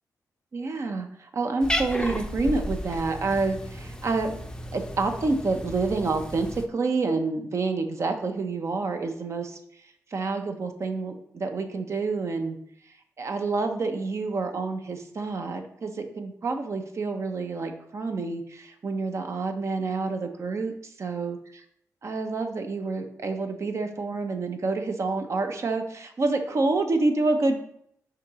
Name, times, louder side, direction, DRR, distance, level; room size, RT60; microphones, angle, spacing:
voice 1, 0.5-4.3 4.7-9.6 10.1-12.6 13.2-21.4 22.0-27.6, right 3 dB, 50° right, 6 dB, 0.8 m, -28 dB
Cat, 1.6-6.7, left 1 dB, 10° left, 0.6 m, -34 dB
5.8 x 4.0 x 4.8 m, 0.69 s
cardioid pair, 100°, 6 cm